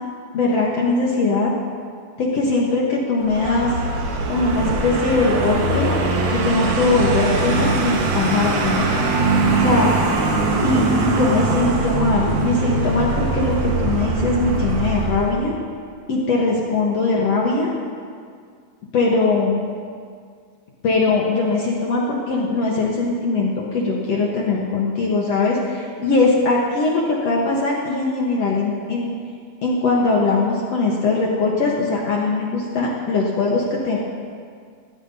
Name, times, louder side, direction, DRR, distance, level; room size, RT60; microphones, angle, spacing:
voice 1, 0.3-1.5 2.2-3.7 4.3-5.9 6.3-8.9 9.6-9.9 10.6-15.5 16.1-17.7 18.9-19.6 20.8-29.1 29.6-34.0, left 3 dB, 60° left, -3 dB, 1.7 m, -20 dB
Vehicle, 3.2-15.5, right 3 dB, 70° right, 3.1 m, -22 dB
18.0 x 17.0 x 2.8 m, 2.1 s
omnidirectional pair, 4.5 m